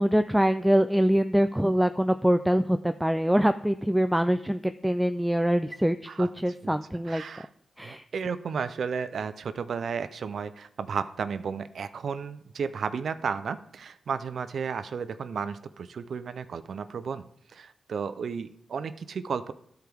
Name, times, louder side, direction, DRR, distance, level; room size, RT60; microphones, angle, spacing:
voice 1, 0.0-7.2 7.8-8.0, equal, 5° right, 9 dB, 0.3 m, -24 dB
voice 2, 7.0-7.5 7.8-19.5, right 6 dB, 70° right, 13 dB, 0.4 m, -33 dB
13.0 x 4.5 x 3.5 m, 0.67 s
cardioid pair, 60°, 0 cm